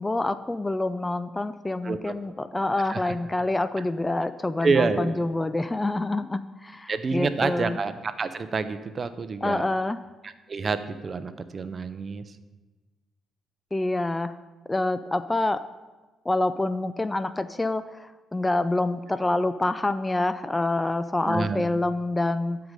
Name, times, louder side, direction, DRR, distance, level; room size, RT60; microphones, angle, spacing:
voice 1, 0.0-7.8 9.4-10.0 13.7-14.4 14.7-15.6 16.3-22.6, left 2 dB, 15° left, 13 dB, 0.3 m, -27 dB
voice 2, 1.8-2.2 2.8-3.1 4.6-5.2 6.9-9.7 10.2-12.4 21.2-21.7, right 4 dB, 40° right, 11 dB, 0.6 m, -28 dB
12.0 x 4.8 x 5.2 m, 1.2 s
cardioid pair, 90°, 0 cm